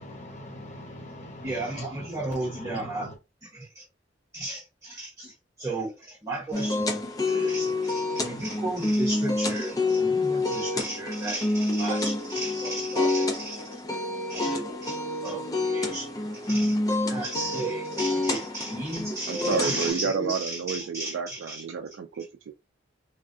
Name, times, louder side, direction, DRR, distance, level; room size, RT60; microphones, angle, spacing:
voice 1, 0.0-3.1, equal, 40° left, 1.0 m, -41 dB
voice 2, 1.4-3.1 3.5-3.8 4.3-5.3 5.6-13.6 14.3-15.0 15.2-21.6, right 2 dB, 15° right, 0.9 m, -34 dB
sound 1, 6.5-19.9, left 2 dB, 20° left, 0.4 m, -28 dB
voice 3, 19.3-22.5, right 6 dB, 85° right, 0.3 m, -30 dB
3.4 x 2.2 x 2.6 m
head